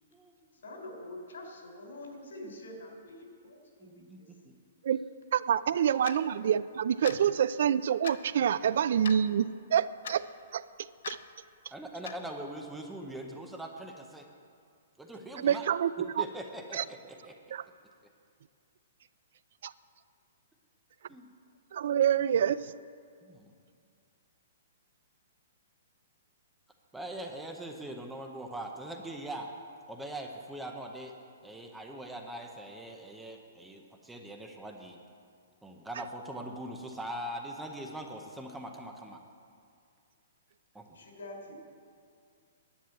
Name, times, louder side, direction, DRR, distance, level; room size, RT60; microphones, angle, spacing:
voice 1, 0.6-3.9 5.7-6.3 40.9-41.6, left 1 dB, 90° left, 1 dB, 3.5 m, -46 dB
voice 2, 3.8-4.2 4.4-4.6 11.7-14.3 15.0-15.7 16.2-17.4 21.1-21.3 23.2-23.5 26.9-29.5 29.9-31.1 31.4-35.0 35.6-39.2 40.7-41.0, right 1 dB, 5° right, 2 dB, 0.7 m, -42 dB
voice 3, 5.3-10.2 10.5-10.6 11.1-11.2 15.4-16.2 16.7-16.8 17.5-17.6 19.6-19.7 21.7-22.7, right 9 dB, 55° right, 17 dB, 0.3 m, -27 dB
Clock, 6.0-6.2 7.0-7.2 8.0-8.2 9.0-9.2 10.0-10.2 11.0-11.2 12.0-12.2, left 7 dB, 60° left, 0.6 m, -39 dB
10.5 x 7.4 x 9.5 m, 2.3 s
hypercardioid pair, 175°, 0 cm